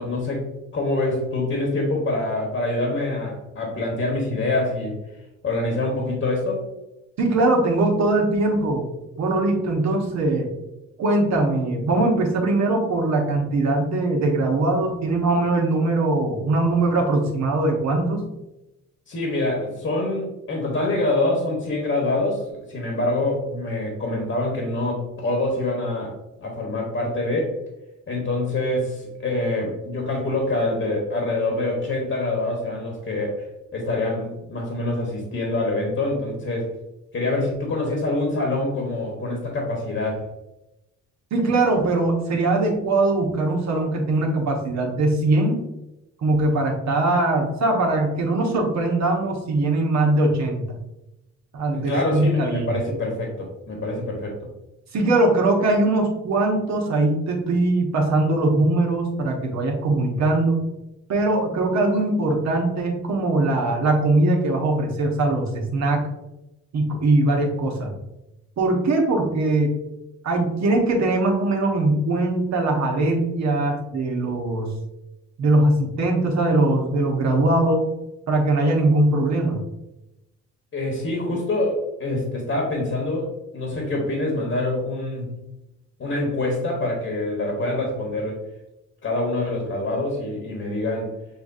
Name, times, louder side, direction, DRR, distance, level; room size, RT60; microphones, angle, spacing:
voice 1, 0.0-5.0 5.4-6.6 19.1-27.5 28.1-33.4 33.7-36.7 37.1-40.3 51.7-54.3 80.7-85.4 86.0-88.4 89.0-91.1, left 2 dB, 45° left, -1 dB, 1.3 m, -25 dB
voice 2, 7.2-8.9 9.2-10.5 11.0-18.2 41.3-45.6 46.2-50.6 51.5-52.7 54.9-60.6 61.1-66.1 66.7-67.9 68.6-69.8 70.2-74.7 75.4-77.9 78.3-79.6, right 2 dB, 65° right, 0 dB, 1.2 m, -21 dB
6.8 x 2.5 x 2.7 m, 0.93 s
cardioid pair, 90°, 30 cm